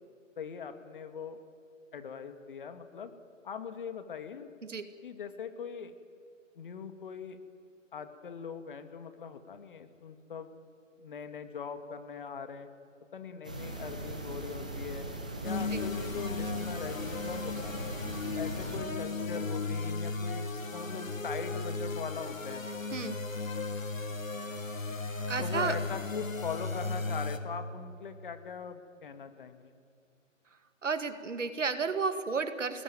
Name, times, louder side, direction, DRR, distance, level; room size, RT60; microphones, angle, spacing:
voice 1, 0.4-1.4 1.9-3.1 3.4-4.5 5.0-5.9 6.6-7.4 7.9-10.5 11.0-12.7 13.1-15.1 15.4-17.9 18.4-20.4 20.7-22.7 25.4-29.7, left 6 dB, 40° left, 9 dB, 2.1 m, -41 dB
sound 1, 13.4-18.8, right 1 dB, 5° right, 0.5 m, -40 dB
sound 2, 15.4-27.4, left 3 dB, 90° left, 2.4 m, -36 dB
voice 2, 22.9-23.2 25.3-25.8 30.8-32.8, right 5 dB, 70° right, 10 dB, 2.3 m, -32 dB
26.5 x 20.0 x 9.3 m, 2.4 s
figure-of-eight pair, 155°, 39 cm